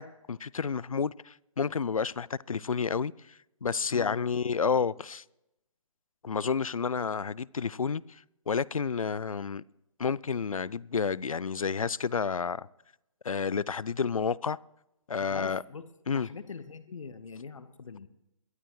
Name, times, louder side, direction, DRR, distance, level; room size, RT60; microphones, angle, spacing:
voice 1, 0.0-3.1 3.6-5.2 6.2-9.6 10.0-12.7 13.2-14.6 15.1-15.6 16.1-16.3, left 5 dB, 85° left, 0.5 m, -30 dB
voice 2, 3.9-4.3 15.2-18.1, left 5 dB, 70° left, 1.1 m, -43 dB
22.0 x 12.5 x 3.1 m
figure-of-eight pair, 145°, 17 cm